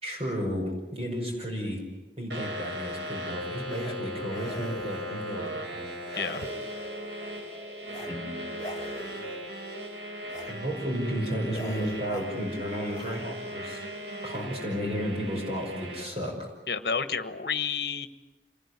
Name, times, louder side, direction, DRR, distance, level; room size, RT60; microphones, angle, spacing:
voice 1, 0.0-1.8 2.2-6.2 8.1-8.5 10.5-13.8 14.2-16.5, equal, 35° right, 1 dB, 5.6 m, -33 dB
sound 1, 2.3-16.0, equal, 80° right, 5.9 m, -38 dB
sound 2, 3.7-4.0 4.3-5.2 6.0-7.0 7.8-8.2 8.5-9.4 10.2-10.6 10.9-11.1 11.5-12.4 12.8-13.2, left 1 dB, 20° left, 2.4 m, -43 dB
sound 3, 4.3-9.5, right 2 dB, 15° right, 4.3 m, -47 dB
voice 2, 6.2-6.5 16.7-18.1, left 6 dB, 60° left, 11 dB, 1.4 m, -30 dB
27.5 x 20.0 x 9.8 m, 1.2 s
head